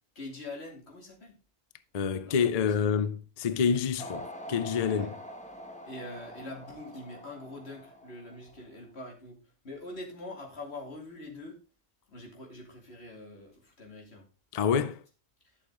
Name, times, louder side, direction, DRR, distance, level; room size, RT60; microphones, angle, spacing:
voice 1, 0.1-1.3 2.3-2.8 4.9-5.1 5.8-9.4 9.6-11.6 12.1-14.3, left 2 dB, 90° left, 2.8 m, -44 dB
voice 2, 1.9-5.1 14.5-15.0, left 6 dB, 45° left, 0.6 m, -27 dB
sound 1, 4.0-8.7, equal, 5° left, 1.3 m, -45 dB
11.5 x 6.5 x 3.7 m
omnidirectional pair, 1.1 m